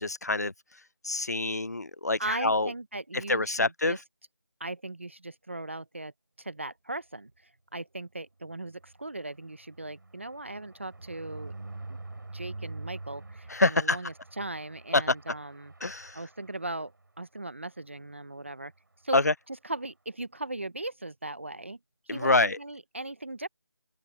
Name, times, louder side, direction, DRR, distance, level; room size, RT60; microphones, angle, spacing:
voice 1, 0.0-2.7 3.1-4.0 13.5-14.0 14.9-15.1 15.8-16.2 19.1-19.3 22.1-22.6, left 2 dB, 40° left, 0.4 m, -26 dB
voice 2, 2.2-4.0 4.6-6.1 6.4-11.5 11.9-12.0 12.3-15.7 16.1-16.9 17.2-18.7 19.0-19.2 19.5-21.8 22.1-23.5, right 2 dB, 30° right, 0.6 m, -38 dB
sound 1, 8.4-17.2 17.7-17.8 18.1-18.2 18.5-18.7, right 2 dB, 50° right, 3.8 m, -46 dB
figure-of-eight pair, 175°, 13 cm